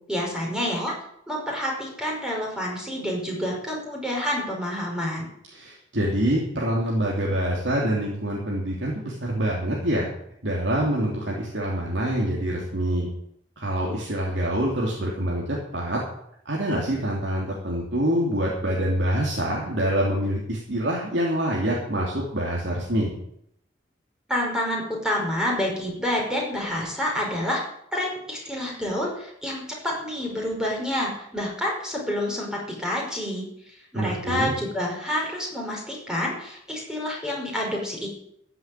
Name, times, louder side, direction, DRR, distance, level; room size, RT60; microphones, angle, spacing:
voice 1, 0.1-0.9 1.3-5.3 24.3-27.6 27.9-33.5 33.9-38.1, left 1 dB, 5° right, -2 dB, 5.2 m, -28 dB
voice 2, 5.5-10.1 10.4-13.1 13.6-16.0 16.4-23.1 33.9-34.5, right 1 dB, 65° right, -3 dB, 3.2 m, -25 dB
14.5 x 8.1 x 9.2 m, 0.74 s
head